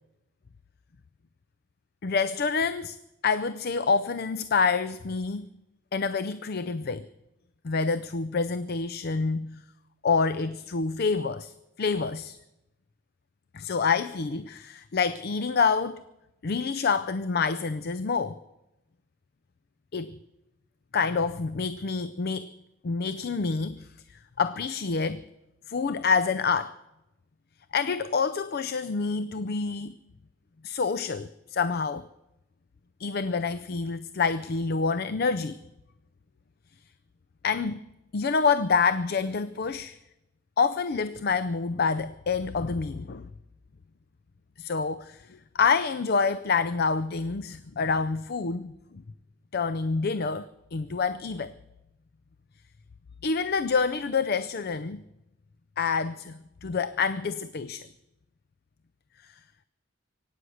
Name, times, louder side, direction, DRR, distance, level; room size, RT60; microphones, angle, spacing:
voice 1, 2.0-3.0 3.2-5.5 5.9-7.1 7.6-9.6 10.0-12.4 13.5-16.0 16.4-18.4 19.9-20.1 20.9-22.5 22.8-25.2 25.7-26.8 27.7-30.0 30.6-32.1 33.0-35.6 37.4-37.8 38.1-40.0 40.6-43.3 44.6-48.7 49.5-51.5 53.2-55.0 55.8-57.9 59.2-59.3, left 5 dB, 50° left, 0.5 m, -27 dB
24.0 x 9.4 x 6.4 m
head